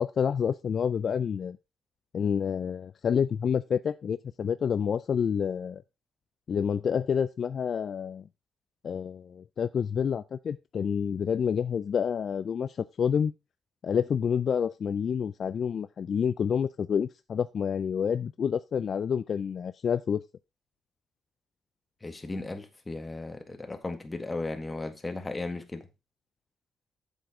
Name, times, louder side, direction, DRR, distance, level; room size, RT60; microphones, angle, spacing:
voice 1, 0.0-1.6 2.1-5.8 6.5-8.2 8.8-13.3 13.8-20.2, left 7 dB, 55° left, 0.4 m, -28 dB
voice 2, 22.0-25.9, left 2 dB, 20° left, 1.7 m, -36 dB
7.7 x 7.2 x 4.3 m
cardioid pair, 90°, 0 cm